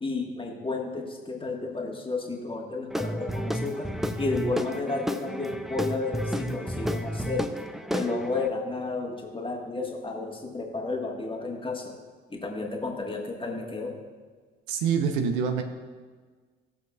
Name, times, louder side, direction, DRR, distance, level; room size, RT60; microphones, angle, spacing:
voice 1, 0.0-7.5 7.9-11.9 12.3-13.9, left 3 dB, 15° left, 0 dB, 1.7 m, -32 dB
Guitar / Drum, 2.9-8.5, equal, ahead, 0.5 m, -31 dB
voice 2, 14.7-15.6, right 6 dB, 65° right, 6 dB, 0.8 m, -25 dB
16.0 x 6.8 x 2.4 m, 1.5 s
figure-of-eight pair, 50°, 30 cm